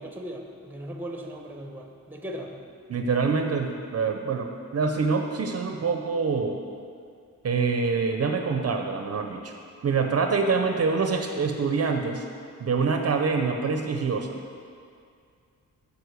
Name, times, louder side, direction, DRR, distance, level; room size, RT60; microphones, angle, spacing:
voice 1, 0.0-2.6, equal, 5° right, 2 dB, 0.9 m, -38 dB
voice 2, 2.9-6.6 7.4-9.5 9.8-12.2 12.6-14.4, right 4 dB, 45° right, 4 dB, 0.6 m, -25 dB
9.7 x 5.3 x 6.5 m, 2.3 s
wide cardioid pair, 145°, 33 cm